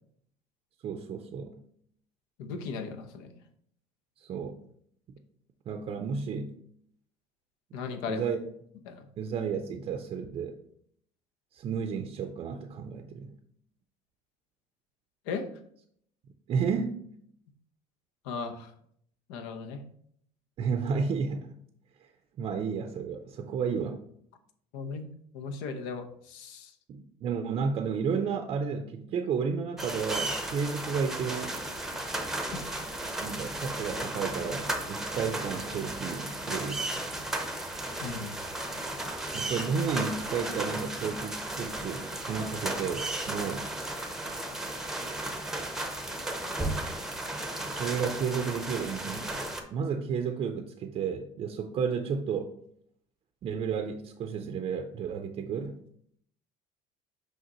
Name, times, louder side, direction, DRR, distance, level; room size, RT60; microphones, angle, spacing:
voice 1, 0.8-1.6 4.2-4.6 5.7-6.5 8.1-8.4 9.2-10.6 11.5-13.3 16.5-17.0 20.6-21.5 22.0-22.1 22.4-24.0 26.9-31.6 33.2-36.9 39.3-43.7 47.7-49.4 49.7-52.5 53.4-55.8, right 6 dB, 40° right, 6 dB, 0.5 m, -32 dB
voice 2, 2.4-3.4 7.7-8.3 8.8-9.1 15.3-15.5 18.2-18.7 19.3-19.8 24.7-25.1 25.3-26.7 32.5-32.7 38.0-38.3, left 5 dB, 90° left, 8 dB, 0.9 m, -37 dB
sound 1, 29.8-49.6, right 1 dB, 5° right, 0.7 m, -35 dB
6.4 x 5.0 x 3.0 m, 0.66 s
cardioid pair, 135°, 14 cm